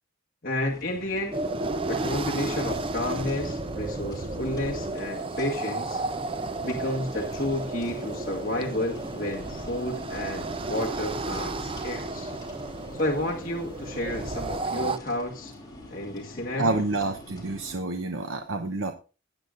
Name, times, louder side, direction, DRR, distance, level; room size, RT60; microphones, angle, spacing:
voice 1, 0.4-1.4 1.8-6.0 6.6-12.3 12.9-15.5 15.9-16.8, left 1 dB, 45° left, -2 dB, 1.6 m, -31 dB
sound 1, 0.6-17.8, left 1 dB, 20° left, 3.0 m, -45 dB
sound 2, 1.3-15.0, right 2 dB, 25° right, 0.6 m, -33 dB
voice 2, 16.6-18.9, right 3 dB, 75° right, 5 dB, 0.9 m, -28 dB
18.0 x 8.9 x 2.5 m, 0.33 s
head